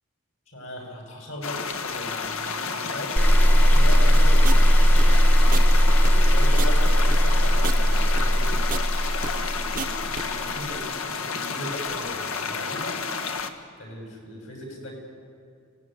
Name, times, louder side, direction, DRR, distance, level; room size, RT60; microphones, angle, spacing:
voice 1, 0.5-3.2 3.5-4.7 6.0-8.6 10.0-13.0 13.8-14.9, equal, 65° left, 1 dB, 7.3 m, -38 dB
sound 1, 1.4-13.5, left 5 dB, 80° left, 1.6 m, -31 dB
sound 2, 3.2-10.3, equal, 10° left, 1.1 m, -18 dB
sound 3, 3.9-10.2, right 5 dB, 40° right, 0.8 m, -34 dB
25.5 x 18.5 x 9.4 m, 2.3 s
head